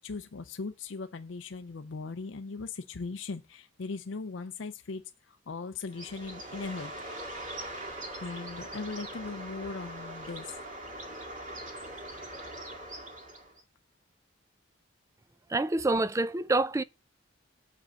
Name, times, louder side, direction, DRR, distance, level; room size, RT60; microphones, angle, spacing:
voice 1, 0.0-6.9 8.2-10.6, left 4 dB, 75° left, 0.5 m, -39 dB
Bird, 5.9-13.6, right 1 dB, 40° right, 1.9 m, -42 dB
voice 2, 15.5-16.8, right 2 dB, 15° right, 0.4 m, -27 dB
6.9 x 5.0 x 6.3 m
head